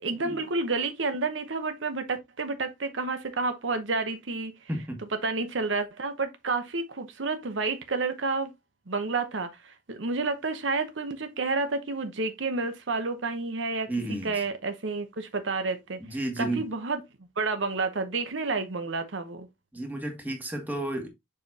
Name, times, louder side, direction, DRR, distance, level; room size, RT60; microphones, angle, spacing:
voice 1, 0.0-4.5 5.2-8.5 8.9-13.9 14.2-16.0 16.4-17.0 17.4-19.5, right 3 dB, 75° right, 0.9 m, -30 dB
voice 2, 13.9-14.4 16.0-16.6 19.7-21.1, right 1 dB, 10° right, 1.7 m, -32 dB
7.0 x 5.0 x 2.8 m
head